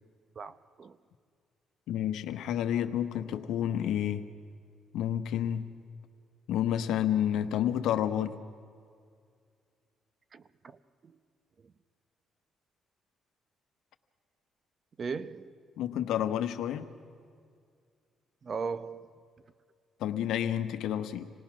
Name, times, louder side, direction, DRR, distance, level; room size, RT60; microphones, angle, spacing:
voice 1, 0.4-1.0 10.3-11.2 11.6-11.7 15.0-15.5 18.4-19.1, right 5 dB, 45° right, 13 dB, 0.7 m, -38 dB
voice 2, 1.9-4.3 4.9-5.7 6.5-8.4 15.8-16.9 20.0-21.3, left 10 dB, 85° left, 9 dB, 1.0 m, -30 dB
27.0 x 18.5 x 6.1 m, 2.2 s
cardioid pair, 90°, 0 cm